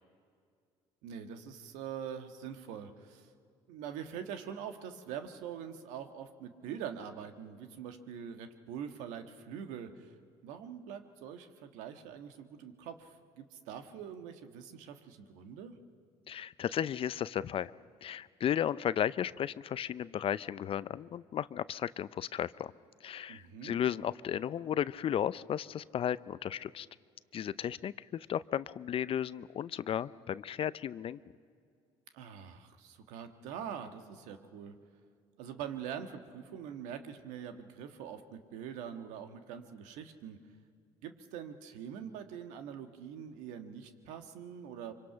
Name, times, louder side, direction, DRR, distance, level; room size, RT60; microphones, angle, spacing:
voice 1, 1.0-3.3 3.7-10.1 10.4-15.7 23.3-23.8 32.1-34.7 35.4-40.4 41.0-44.9, right 8 dB, 80° right, 7 dB, 1.5 m, -44 dB
voice 2, 16.3-17.7 18.0-22.7 23.0-26.9 27.3-31.2, left 9 dB, 50° left, 17 dB, 0.6 m, -34 dB
25.0 x 25.0 x 5.8 m, 2.2 s
supercardioid pair, 65°, 12 cm